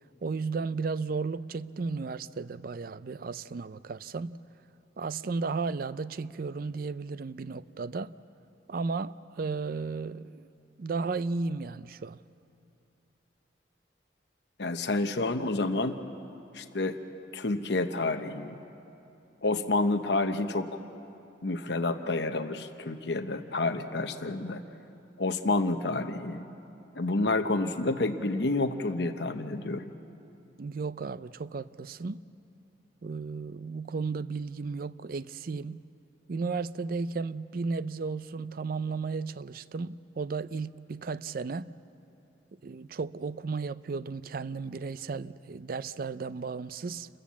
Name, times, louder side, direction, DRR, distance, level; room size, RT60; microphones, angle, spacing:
voice 1, 0.2-4.4 5.0-8.1 8.7-10.5 10.8-12.2 30.6-32.2 33.0-35.8 36.3-41.7 42.6-47.1, right 4 dB, 50° right, 0.4 m, -34 dB
voice 2, 14.6-16.0 16.5-17.0 17.3-18.6 19.4-20.8 21.4-24.6 25.2-26.4 27.0-29.9, left 2 dB, 65° left, 0.9 m, -29 dB
28.5 x 14.5 x 7.4 m
head